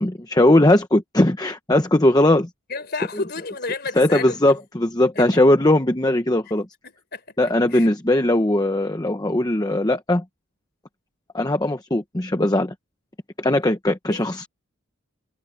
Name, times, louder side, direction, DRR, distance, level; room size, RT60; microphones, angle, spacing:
voice 1, 0.0-2.5 4.0-6.7 7.4-10.2 11.3-12.7 13.4-14.5, left 1 dB, 20° left, 0.9 m, -19 dB
voice 2, 2.7-4.4 5.1-5.4 6.8-7.9 14.1-14.3, left 4 dB, 50° left, 4.6 m, -32 dB
head